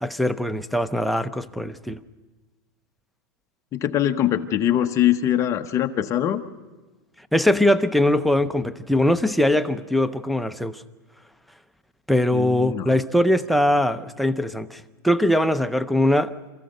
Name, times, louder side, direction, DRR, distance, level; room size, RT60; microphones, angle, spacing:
voice 1, 0.0-2.0 7.3-10.8 12.1-16.5, left 1 dB, ahead, 8 dB, 0.6 m, -21 dB
voice 2, 3.7-6.4 12.3-12.9, left 11 dB, 25° left, 8 dB, 1.0 m, -22 dB
27.5 x 15.0 x 6.6 m, 1.2 s
supercardioid pair, 145°, 11 cm